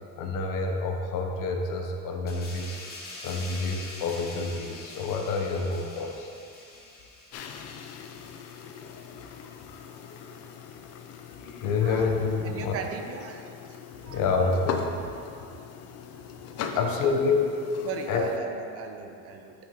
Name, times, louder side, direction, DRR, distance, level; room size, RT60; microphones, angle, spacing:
voice 1, 0.2-2.8 3.2-6.4 8.6-9.3 9.7-10.3 11.3-12.7 14.0-15.5 16.8-18.2, left 4 dB, 70° left, 3 dB, 0.9 m, -29 dB
sound 1, 2.3-9.4 9.8-10.0, left 2 dB, 30° left, 1.2 m, -45 dB
sound 2, 7.3-18.4, left 7 dB, 50° left, 0.5 m, -40 dB
voice 2, 12.4-13.8 14.1-14.2 16.7-17.1 17.8-19.5, right 5 dB, 45° right, 4 dB, 0.5 m, -37 dB
9.2 x 5.7 x 3.0 m, 2.5 s
cardioid pair, 175°, 33 cm